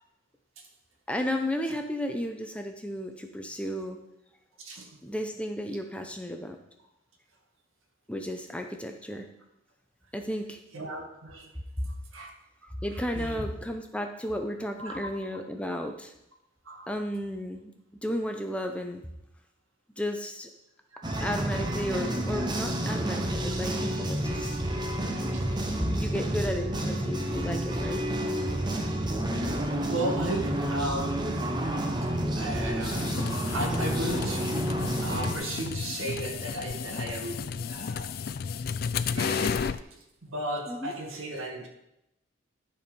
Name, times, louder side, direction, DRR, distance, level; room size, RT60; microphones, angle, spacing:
voice 1, 1.1-4.0 5.0-6.6 8.1-9.3 10.1-10.6 12.8-16.1 16.9-17.7 18.0-19.1 20.0-20.5 21.2-24.6 25.9-28.0 40.7-40.9, equal, 5° left, 4 dB, 0.6 m, -33 dB
voice 2, 4.6-5.0 10.7-12.3 12.9-13.4 14.8-15.1 16.6-17.0 20.9-21.1 25.3-25.5 28.8-28.9 29.9-31.6 32.0-32.1 32.4-38.2 38.9-41.7, right 1 dB, 85° right, 2 dB, 1.9 m, -36 dB
sound 1, 21.0-35.3, right 1 dB, 20° right, 0.8 m, -30 dB
sound 2, 32.8-39.8, left 6 dB, 45° left, 0.3 m, -33 dB
12.5 x 4.4 x 5.3 m, 0.84 s
head